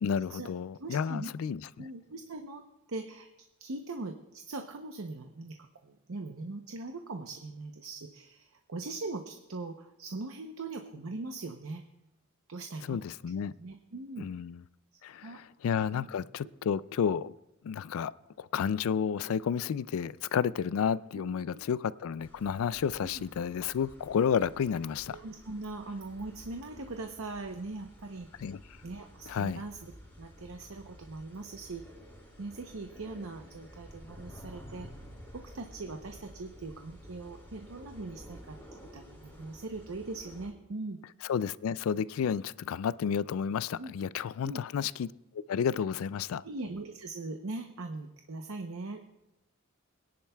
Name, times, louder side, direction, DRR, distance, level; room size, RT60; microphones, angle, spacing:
voice 1, 0.0-1.9 12.9-13.5 14.2-14.6 15.0-17.3 17.6-18.1 18.4-25.2 28.4-28.6 29.3-29.6 41.2-45.1 45.5-46.4, left 7 dB, 70° left, 0.3 m, -31 dB
voice 2, 0.8-1.3 1.8-2.6 2.9-3.3 3.6-11.8 12.5-13.0 13.6-14.3 15.2-15.4 15.9-16.1 21.1-21.6 23.0-23.2 25.1-28.3 28.8-29.8 30.2-31.8 32.4-34.9 35.3-41.0 43.8-43.9 44.4-44.6 46.4-49.0, right 3 dB, 70° right, 0.8 m, -41 dB
sound 1, 22.2-40.5, equal, 10° left, 3.9 m, -52 dB
23.0 x 10.5 x 2.3 m
head